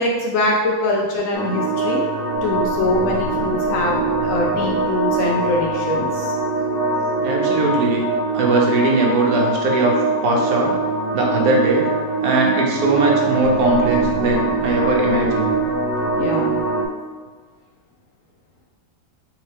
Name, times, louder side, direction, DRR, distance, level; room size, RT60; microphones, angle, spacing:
voice 1, 0.0-2.0 2.4-6.4 16.2-16.6, left 1 dB, 65° left, -1 dB, 0.9 m, -23 dB
sound 1, 1.3-16.8, right 3 dB, 30° left, 0.6 m, -22 dB
voice 2, 7.2-8.1 8.3-10.0 10.2-10.7 11.1-11.9 12.2-15.5, right 2 dB, 70° right, -1 dB, 1.2 m, -19 dB
4.1 x 3.5 x 3.3 m, 1.5 s
omnidirectional pair, 1.7 m